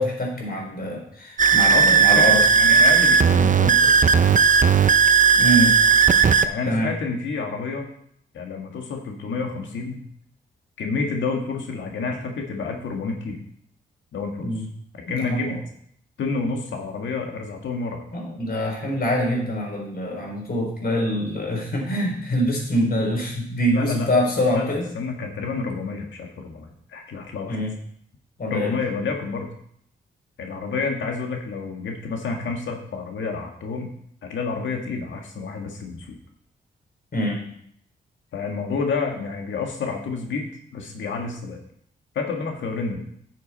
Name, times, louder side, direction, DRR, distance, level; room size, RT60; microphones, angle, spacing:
voice 1, 0.0-2.4 5.4-5.7 6.7-6.9 14.4-14.7 15.1-15.6 18.1-24.9 27.5-27.7 28.4-28.8 37.1-37.4, equal, 50° left, 0 dB, 3.8 m, -24 dB
sound 1, 1.4-6.5, right 6 dB, 40° right, 0.6 m, -16 dB
voice 2, 1.7-3.9 6.4-7.9 8.3-10.0 10.8-13.4 14.1-14.4 15.1-15.5 16.2-18.0 23.7-27.6 28.5-29.5 30.4-33.9 34.2-36.2 38.3-40.5 40.7-41.6 42.2-43.0, left 4 dB, 80° left, 2 dB, 1.9 m, -29 dB
10.5 x 6.7 x 4.2 m, 0.66 s
cardioid pair, 65°, 19 cm